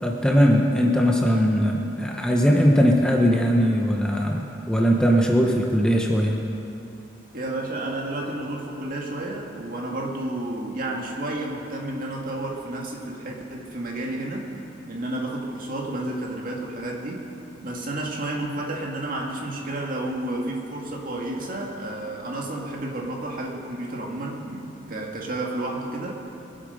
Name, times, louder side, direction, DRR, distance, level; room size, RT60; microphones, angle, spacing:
voice 1, 0.0-6.4, equal, 5° left, 0 dB, 0.9 m, -20 dB
voice 2, 7.3-14.5 14.9-17.3 17.6-26.2, right 1 dB, 50° right, -1 dB, 2.0 m, -31 dB
23.0 x 8.1 x 5.3 m, 2.8 s
head